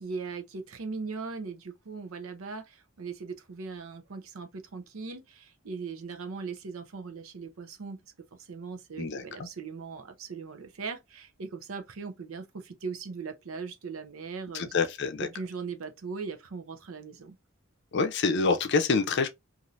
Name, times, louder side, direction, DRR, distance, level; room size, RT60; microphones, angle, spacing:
voice 1, 0.0-8.0 8.4-14.6 15.2-17.4, right 4 dB, 75° right, 0.6 m, -39 dB
voice 2, 9.0-9.5 14.5-15.3 17.9-19.3, left 4 dB, 55° left, 0.5 m, -26 dB
2.6 x 2.6 x 3.1 m
head